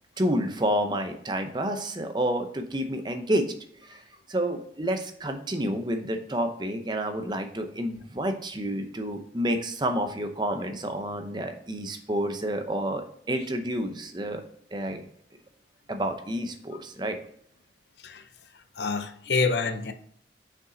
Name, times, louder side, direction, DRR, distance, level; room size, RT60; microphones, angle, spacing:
voice 1, 0.2-3.5 3.9-4.0 4.3-14.4 14.7-15.0 15.9-17.2, right 1 dB, 25° right, 0.7 m, -29 dB
voice 2, 18.8-19.9, left 4 dB, 70° left, 0.7 m, -27 dB
6.1 x 5.2 x 3.9 m
head